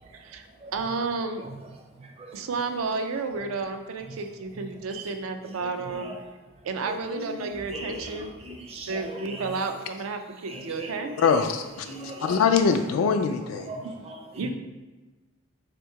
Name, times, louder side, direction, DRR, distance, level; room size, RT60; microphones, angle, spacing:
voice 1, 0.1-0.4 0.7-1.4 2.3-6.1 6.6-8.3 8.9-11.2 14.0-14.1 14.4-14.5, right 4 dB, 85° right, 6 dB, 0.4 m, -31 dB
voice 2, 2.0-2.4 4.1-4.2 4.9-5.1 5.6-6.2 6.9-9.6 10.5-11.4 11.8-12.4 13.4-14.5, right 2 dB, 30° right, 1 dB, 0.5 m, -40 dB
voice 3, 11.2-11.9 12.2-13.7, left 5 dB, 85° left, 6 dB, 0.3 m, -22 dB
3.5 x 2.9 x 4.5 m, 1.2 s
head